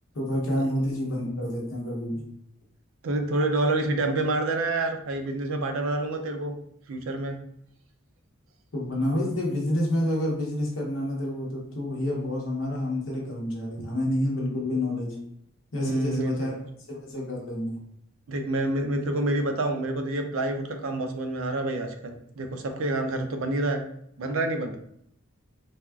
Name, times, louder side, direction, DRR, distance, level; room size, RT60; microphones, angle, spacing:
voice 1, 0.1-2.2 8.7-15.2 15.7-16.5 16.9-17.8, left 1 dB, 65° left, -2 dB, 0.9 m, -28 dB
voice 2, 3.0-6.5 6.9-7.4 13.8-13.9 15.8-16.5 18.3-23.8 24.2-24.8, right 2 dB, 75° right, 5 dB, 0.4 m, -28 dB
3.4 x 2.3 x 2.3 m, 0.72 s
head